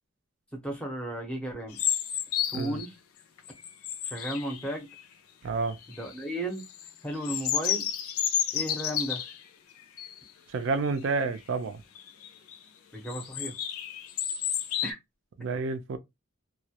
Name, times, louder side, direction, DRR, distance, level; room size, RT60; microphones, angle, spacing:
voice 1, 0.5-1.8 2.5-2.9 4.0-4.9 5.9-6.6 7.0-7.9 8.5-9.2 12.9-13.6 14.8-15.0, right 1 dB, 5° left, 0.6 m, -34 dB
sound 1, 1.7-2.9 3.4-5.0 5.7-6.2 6.6-9.4 10.0-10.2 10.6-10.7 11.0-11.4 11.9-12.6 13.1-14.9, left 9 dB, 90° left, 0.5 m, -31 dB
voice 2, 5.4-5.8 10.5-11.8 15.4-16.0, right 4 dB, 60° right, 0.4 m, -29 dB
2.2 x 2.0 x 2.7 m
head